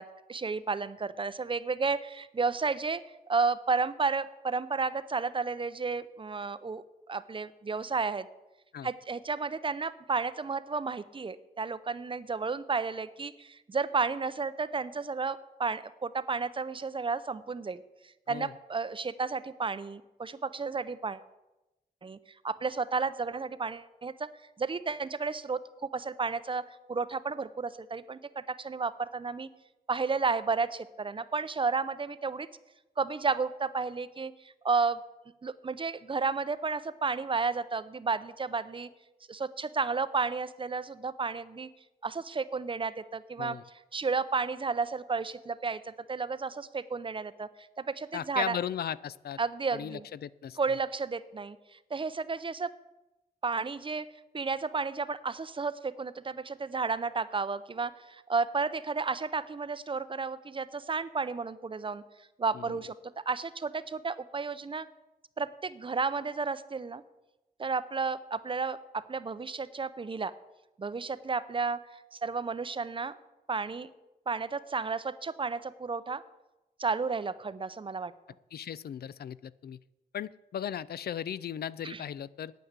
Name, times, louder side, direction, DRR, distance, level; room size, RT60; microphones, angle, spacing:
voice 1, 0.0-8.3 8.8-17.8 18.3-21.2 22.0-22.2 22.4-24.3 24.6-29.5 29.9-32.5 33.0-34.3 34.6-35.0 35.4-38.9 39.3-41.7 42.0-43.6 43.9-47.5 47.8-48.6 49.4-50.0 50.6-52.7 53.4-54.1 54.3-62.0 62.4-62.9 63.3-64.9 65.4-67.0 67.6-70.3 70.8-73.2 73.5-73.9 74.3-76.2 76.8-78.1 81.8-82.0, right 4 dB, 30° right, 15 dB, 0.5 m, -32 dB
voice 2, 48.1-49.4 49.7-50.6 62.5-62.8 78.5-79.8 80.1-82.5, left 9 dB, 70° left, 19 dB, 0.4 m, -37 dB
9.3 x 9.2 x 8.1 m, 0.99 s
wide cardioid pair, 130°, 17 cm